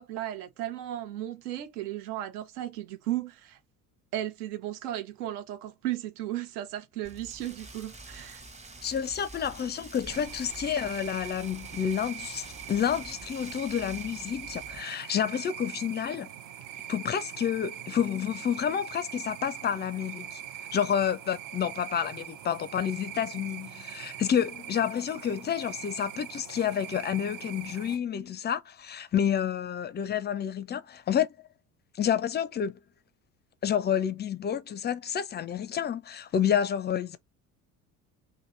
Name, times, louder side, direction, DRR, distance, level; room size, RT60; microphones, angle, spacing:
voice 1, 0.0-3.6 4.1-8.4, right 13 dB, 75° right, 0.9 m, -35 dB
Rain, 7.0-14.8, right 2 dB, 15° right, 0.9 m, -47 dB
voice 2, 8.8-16.3 16.9-20.4 20.7-31.3 32.0-32.8 33.6-37.2, left 8 dB, 25° left, 0.4 m, -29 dB
sound 1, 10.1-28.0, right 10 dB, 45° right, 0.7 m, -42 dB
2.8 x 2.6 x 3.9 m
hypercardioid pair, 65°, 45 cm